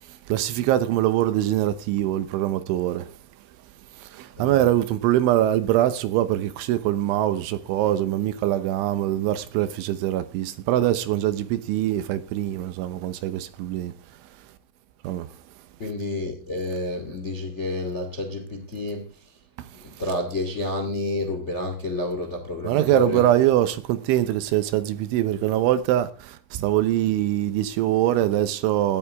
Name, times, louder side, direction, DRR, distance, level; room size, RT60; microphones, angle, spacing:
voice 1, 0.3-3.1 4.0-13.9 15.0-15.3 19.6-19.7 22.6-29.0, right 13 dB, 75° right, 3.3 m, -23 dB
voice 2, 4.3-4.7 15.8-19.4 19.8-23.3, left 2 dB, 60° left, 0.7 m, -30 dB
18.0 x 14.0 x 3.6 m
omnidirectional pair, 5.8 m